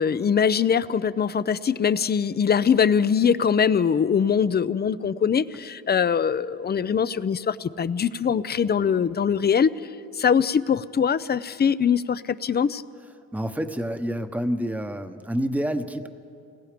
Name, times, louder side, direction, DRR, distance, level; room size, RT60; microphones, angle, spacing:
voice 1, 0.0-9.7 10.2-12.8, left 7 dB, 35° left, 15 dB, 0.6 m, -22 dB
voice 2, 13.3-16.1, equal, 5° right, 8 dB, 1.1 m, -28 dB
29.0 x 19.5 x 5.2 m, 2.5 s
cardioid pair, 90°, 30 cm